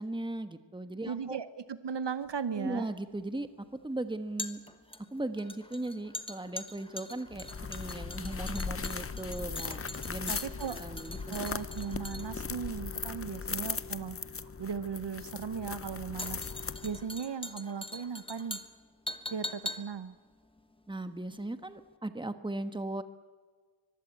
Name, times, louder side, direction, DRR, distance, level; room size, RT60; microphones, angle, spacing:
voice 1, 0.0-1.4 2.6-4.6 5.1-10.3 10.7-11.3 20.9-23.0, right 2 dB, 10° right, 10 dB, 1.3 m, -38 dB
voice 2, 1.0-2.9 10.3-10.8 11.3-14.2 14.6-16.5 16.8-18.6 19.3-20.2, right 6 dB, 55° right, 13 dB, 0.9 m, -37 dB
sound 1, 2.2-21.5 21.8-21.9, left 1 dB, 10° left, 1.2 m, -44 dB
sound 2, 7.3-17.2, left 5 dB, 30° left, 0.6 m, -38 dB
24.0 x 21.5 x 8.5 m, 1.5 s
wide cardioid pair, 130°, 49 cm